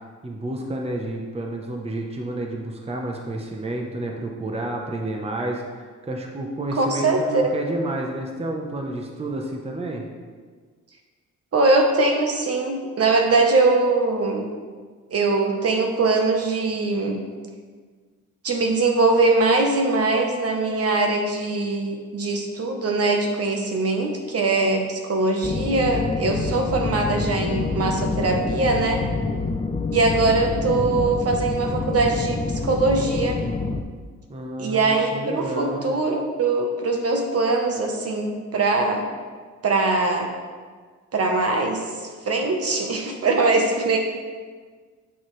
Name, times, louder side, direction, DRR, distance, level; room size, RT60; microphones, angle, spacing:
voice 1, 0.2-10.0 34.3-36.0, right 1 dB, 20° right, 1 dB, 0.8 m, -30 dB
voice 2, 6.7-7.6 11.5-14.5 15.1-17.2 18.4-29.0 29.9-33.4 34.6-39.1 39.6-40.3 41.1-44.0, right 3 dB, 50° right, 3 dB, 1.0 m, -22 dB
sound 1, 25.4-33.8, left 4 dB, 20° left, 0.5 m, -27 dB
8.0 x 7.0 x 3.2 m, 1.5 s
cardioid pair, 115°, 30 cm